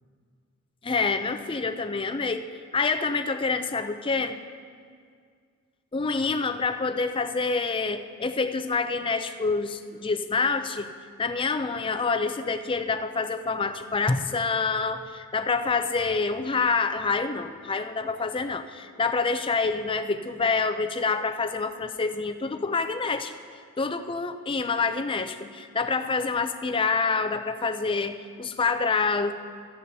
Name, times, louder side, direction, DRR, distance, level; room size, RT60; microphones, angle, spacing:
voice 1, 0.8-2.5 2.7-4.4 5.9-10.9 11.2-23.3 23.8-29.3, left 4 dB, 25° left, 8 dB, 0.5 m, -27 dB
16.0 x 13.0 x 2.8 m, 2.1 s
head